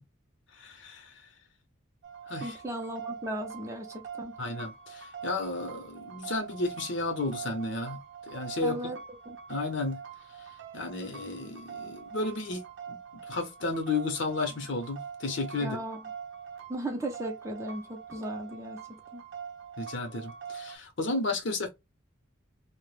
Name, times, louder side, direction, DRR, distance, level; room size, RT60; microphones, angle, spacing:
voice 1, 0.6-1.1 2.3-2.5 4.4-8.0 8.3-8.8 9.5-10.0 10.7-13.0 13.3-15.8 19.8-21.7, left 3 dB, 60° left, 0.7 m, -33 dB
sound 1, 2.0-20.8, right 6 dB, 60° right, 0.6 m, -44 dB
voice 2, 2.4-4.4 8.6-9.0 9.3-9.4 15.6-16.0 16.7-19.2, right 1 dB, 15° right, 0.4 m, -36 dB
2.2 x 2.0 x 3.0 m
head